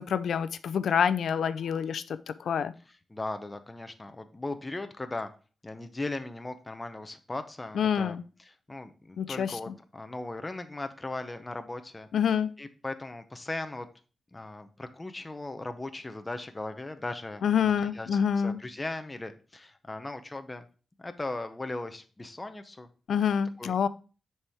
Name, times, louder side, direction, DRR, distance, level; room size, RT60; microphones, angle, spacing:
voice 1, 0.0-2.0 2.5-2.7 7.7-8.2 9.2-9.7 12.1-12.5 17.4-18.6 23.1-23.9, left 7 dB, 75° left, 0.4 m, -27 dB
voice 2, 3.1-5.3 5.6-12.1 12.6-13.9 14.3-18.1 18.4-20.6 21.0-22.9 23.6-23.9, left 2 dB, 15° left, 0.6 m, -38 dB
10.0 x 4.3 x 3.5 m
wide cardioid pair, 140°, 0 cm